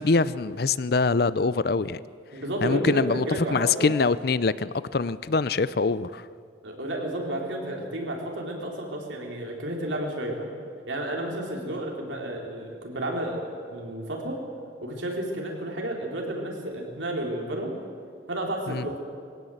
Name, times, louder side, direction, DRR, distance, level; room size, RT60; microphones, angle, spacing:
voice 1, 0.0-2.0 2.6-3.2 3.5-6.2 18.7-18.9, left 4 dB, 55° left, 17 dB, 0.5 m, -24 dB
voice 2, 2.3-3.9 6.6-10.5 10.9-14.4 14.8-17.8 18.3-19.0, right 1 dB, 85° right, 0 dB, 4.1 m, -31 dB
21.5 x 17.5 x 8.0 m, 2.2 s
head